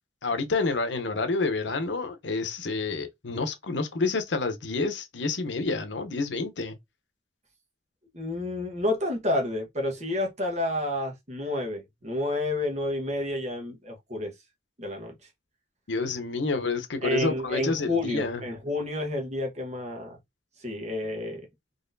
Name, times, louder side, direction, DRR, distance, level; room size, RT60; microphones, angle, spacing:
voice 1, 0.2-6.7 15.9-18.4, left 3 dB, 90° left, 0.8 m, -29 dB
voice 2, 8.1-14.3 14.8-15.1 17.0-20.2 20.6-21.5, left 1 dB, 40° right, 1.3 m, -30 dB
4.0 x 3.1 x 2.6 m
head